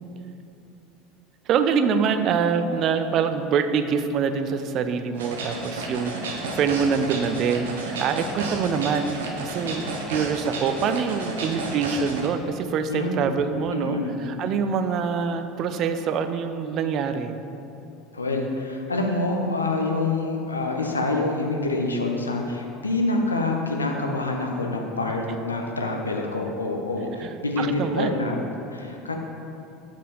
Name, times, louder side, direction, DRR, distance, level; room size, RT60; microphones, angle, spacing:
voice 1, 1.5-17.4 27.2-28.2, right 6 dB, 45° right, 9 dB, 0.4 m, -25 dB
sound 1, 5.1-12.3, right 2 dB, 70° right, 0.7 m, -32 dB
voice 2, 12.9-13.3 13.7-14.2 18.1-28.4 28.7-29.1, left 2 dB, 80° left, 1 dB, 0.6 m, -26 dB
5.1 x 4.3 x 5.4 m, 2.8 s
figure-of-eight pair, 70°, 0 cm